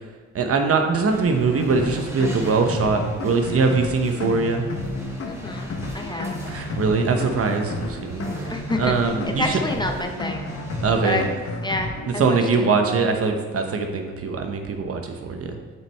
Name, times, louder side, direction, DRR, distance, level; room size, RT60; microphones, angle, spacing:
voice 1, 0.3-4.6 6.5-8.5 8.8-9.5 10.8-11.2 12.2-15.5, right 4 dB, 50° right, 4 dB, 1.0 m, -22 dB
sound 1, 0.8-11.6, right 1 dB, 10° right, 1.5 m, -41 dB
sound 2, 1.5-12.1, left 2 dB, 50° left, 1.1 m, -31 dB
voice 2, 5.2-6.3 8.5-10.5 11.0-11.2 11.6-12.7, left 1 dB, 15° left, 3 dB, 0.7 m, -28 dB
7.4 x 6.2 x 3.4 m, 1.4 s
cardioid pair, 90°, 30 cm